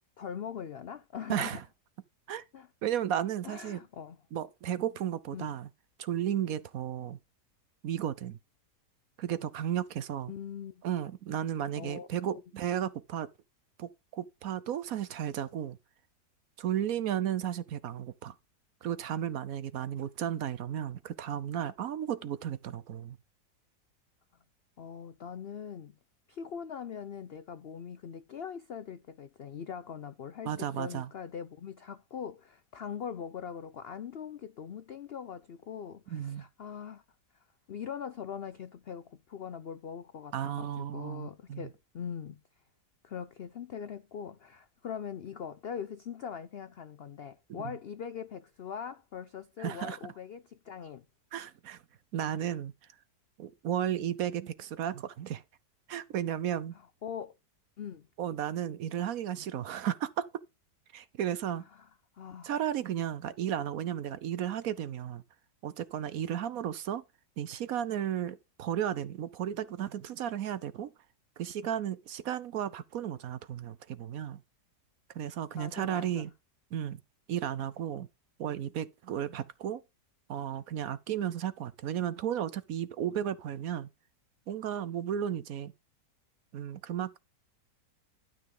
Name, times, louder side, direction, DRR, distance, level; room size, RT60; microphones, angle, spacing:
voice 1, 0.2-1.6 2.5-2.7 3.4-4.2 5.3-5.5 10.3-10.8 11.8-12.1 24.8-26.0 26.3-37.0 37.7-42.4 43.0-51.0 57.0-57.3 57.8-58.1 61.7-61.9 62.1-62.5 75.5-76.2, left 7 dB, 90° left, 0.5 m, -41 dB
voice 2, 1.3-1.6 2.3-2.4 2.8-3.8 4.3-5.7 6.0-7.2 7.8-8.4 9.2-10.3 10.8-13.3 13.8-15.8 16.6-18.4 18.8-23.2 30.4-31.1 36.1-36.4 40.3-41.7 47.5-47.8 49.6-50.0 51.3-51.8 52.1-52.7 53.4-55.4 55.9-56.7 58.2-60.2 60.9-61.6 62.4-65.2 65.6-67.0 67.4-70.9 71.4-74.4 75.1-76.3 76.7-77.0 77.3-78.1 78.4-79.8 80.3-83.9 84.5-85.7 86.5-87.2, right 10 dB, 65° right, 1.1 m, -34 dB
12.0 x 6.1 x 3.9 m
omnidirectional pair, 1.8 m